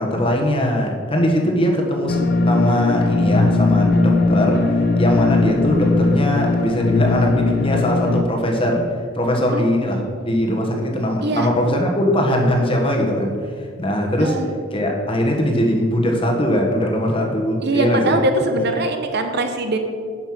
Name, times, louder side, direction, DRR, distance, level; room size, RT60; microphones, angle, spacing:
voice 1, 0.0-2.2 2.5-4.6 5.0-8.8 9.1-13.3 13.8-14.3 14.7-18.2, left 1 dB, 25° left, 1 dB, 1.4 m, -20 dB
sound 1, 2.1-8.2, left 3 dB, 50° left, 0.6 m, -18 dB
voice 2, 14.2-14.5 17.6-19.8, right 2 dB, 50° right, 6 dB, 0.8 m, -22 dB
10.5 x 5.7 x 6.0 m, 2.1 s
head